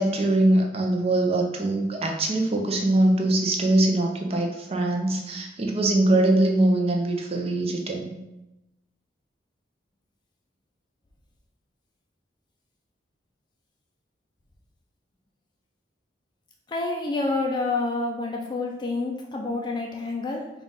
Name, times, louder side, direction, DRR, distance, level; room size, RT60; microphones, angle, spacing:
voice 1, 0.0-8.1, right 1 dB, 35° right, 2 dB, 0.5 m, -22 dB
voice 2, 16.7-20.5, left 3 dB, 25° left, 0 dB, 0.4 m, -28 dB
3.9 x 2.4 x 3.7 m, 0.93 s
head